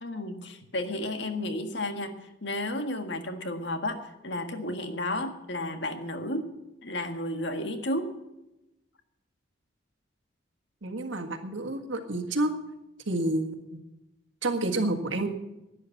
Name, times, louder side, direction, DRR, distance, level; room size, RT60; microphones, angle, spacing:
voice 1, 0.0-6.5 6.8-8.1, left 1 dB, 70° left, 7 dB, 1.6 m, -32 dB
voice 2, 10.8-12.5 13.1-13.8 14.4-15.3, right 2 dB, 85° right, 5 dB, 1.7 m, -29 dB
11.5 x 9.9 x 8.4 m, 0.94 s
head